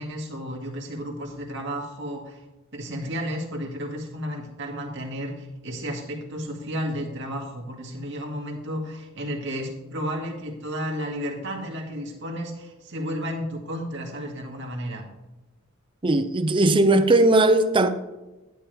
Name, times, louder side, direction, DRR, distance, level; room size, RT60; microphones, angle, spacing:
voice 1, 0.0-2.4 2.7-15.0, equal, 55° right, 2.0 m, -32 dB
voice 2, 16.0-17.9, right 2 dB, 25° right, 0.5 m, -18 dB
11.5 x 9.1 x 3.4 m
head